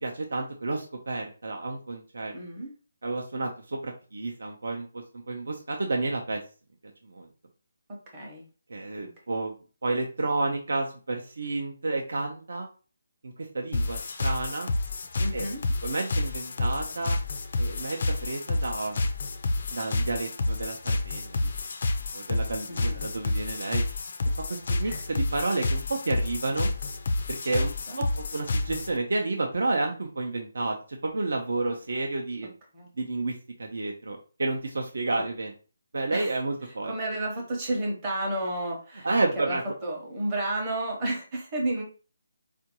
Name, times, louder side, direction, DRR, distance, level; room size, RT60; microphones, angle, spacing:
voice 1, 0.0-2.3 3.0-6.4 7.0-7.3 8.7-9.5 9.8-12.7 13.2-14.7 15.3-15.5 15.8-17.2 17.6-19.1 19.7-21.4 22.1-23.8 24.5-26.7 27.4-32.5 33.0-35.5 35.9-36.9 39.0-39.6, right 2 dB, 55° right, 1 dB, 0.6 m, -30 dB
voice 2, 2.3-2.7 7.9-8.4 15.2-15.6 22.7-23.0 24.8-25.0 27.5-28.0 32.7-32.9 36.1-36.3 36.9-39.1 39.4-41.8, right 1 dB, 15° right, -2 dB, 0.8 m, -32 dB
sound 1, 13.7-29.0, left 2 dB, 35° left, 0.4 m, -29 dB
4.5 x 2.5 x 2.9 m, 0.35 s
hypercardioid pair, 180°, 0 cm